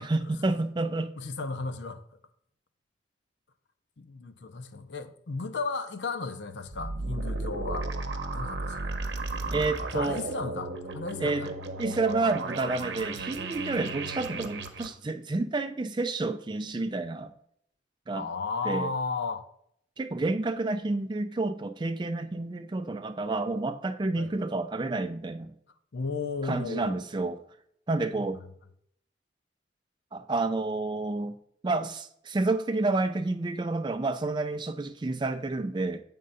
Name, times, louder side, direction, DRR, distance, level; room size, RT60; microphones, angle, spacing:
voice 1, 0.0-1.1 9.5-10.2 11.2-11.5 11.8-17.3 18.1-18.3 18.6-18.9 20.0-25.5 26.4-27.4 27.9-28.4 30.1-31.4 31.6-36.0, right 2 dB, 25° right, 0.4 m, -29 dB
voice 2, 1.2-2.0 4.0-7.9 8.3-8.9 9.9-11.5 18.1-19.4 24.2-24.3 25.9-27.0 28.1-28.3, left 4 dB, 75° left, 0.6 m, -34 dB
sound 1, 6.7-14.9, right 3 dB, 80° right, 0.8 m, -34 dB
7.7 x 3.7 x 5.5 m
head